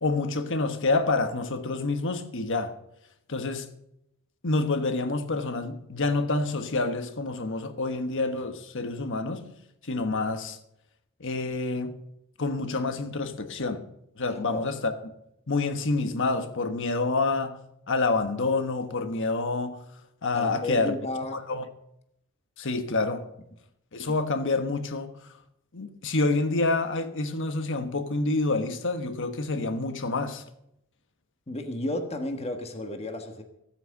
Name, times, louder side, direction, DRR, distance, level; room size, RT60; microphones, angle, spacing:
voice 1, 0.0-2.7 3.3-3.7 4.4-9.4 9.8-10.6 11.2-12.0 12.4-13.8 14.2-15.0 15.5-17.6 17.9-19.8 20.2-20.9 21.3-21.6 22.6-23.3 23.9-25.1 25.7-30.4, left 3 dB, 60° left, 1.4 m, -27 dB
voice 2, 14.3-14.7 20.3-21.4 31.5-33.4, left 2 dB, 30° left, 1.4 m, -33 dB
16.0 x 9.1 x 6.6 m
head